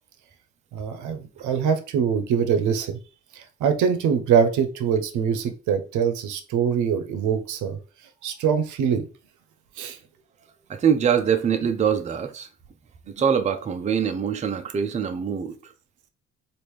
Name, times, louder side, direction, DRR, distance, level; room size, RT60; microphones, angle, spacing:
voice 1, 0.7-3.0 3.3-7.8 8.2-9.1 9.8-10.0, right 7 dB, 80° right, 0.6 m, -23 dB
voice 2, 10.7-12.5 13.1-15.7, right 7 dB, 25° right, 0.4 m, -23 dB
3.0 x 2.5 x 3.4 m
cardioid pair, 90°, 30 cm